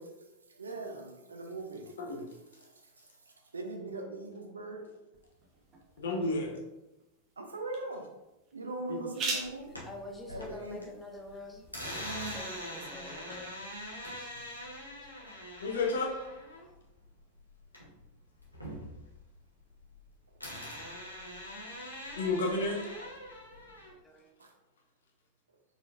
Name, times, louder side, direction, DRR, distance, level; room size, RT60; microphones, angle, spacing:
voice 1, 0.6-1.9 3.5-4.9 7.4-8.1 8.5-9.7 10.3-10.9 24.4-24.5, right 2 dB, 75° right, 3 dB, 0.7 m, -40 dB
sound 1, 5.1-12.6, right 3 dB, 30° right, 1.0 m, -44 dB
voice 2, 6.0-6.5 8.9-9.0 15.6-16.1 22.2-22.8, left 3 dB, 65° left, 0 dB, 0.9 m, -31 dB
sound 2, 9.4-10.9 11.2-18.1 18.4-20.0 20.4-23.9, equal, 90° left, 1.0 m, -43 dB
voice 3, 9.8-13.6 14.1-14.3 15.2-15.3 16.6-16.7 24.0-24.3, left 2 dB, 10° left, 1 dB, 0.7 m, -47 dB
4.5 x 4.1 x 2.5 m, 0.98 s
figure-of-eight pair, 90°, 0 cm